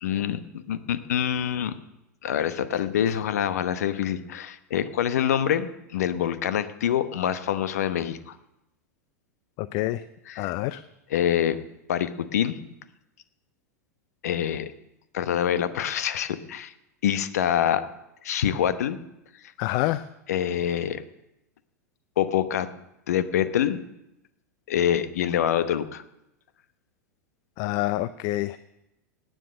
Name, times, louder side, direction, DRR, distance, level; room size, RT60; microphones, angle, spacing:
voice 1, 0.0-1.8 2.2-8.4 10.3-10.5 11.1-11.6 11.9-12.6 14.2-14.7 15.1-16.7 17.0-17.9 18.2-19.0 20.3-21.0 22.2-22.7 23.1-23.8 24.7-26.0, left 10 dB, 65° left, 13 dB, 1.0 m, -25 dB
voice 2, 9.6-10.0 10.3-10.8 19.6-20.1 27.6-28.6, left 16 dB, 45° left, 16 dB, 0.5 m, -27 dB
18.0 x 9.1 x 6.6 m, 0.89 s
figure-of-eight pair, 90°, 9 cm